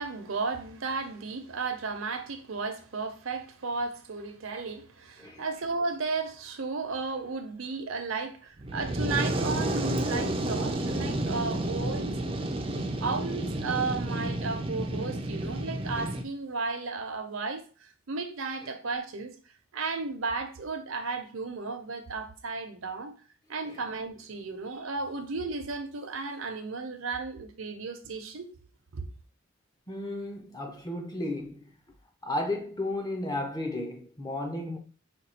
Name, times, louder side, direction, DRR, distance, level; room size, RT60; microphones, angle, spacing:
voice 1, 0.0-12.2 13.0-19.3 19.7-23.1 23.5-28.5 28.9-29.1, right 4 dB, 75° right, 0.7 m, -34 dB
Fire, 8.6-16.2, right 1 dB, 25° right, 0.4 m, -31 dB
voice 2, 29.9-31.8 32.2-34.8, left 1 dB, 20° left, 0.6 m, -34 dB
5.2 x 2.3 x 4.2 m
head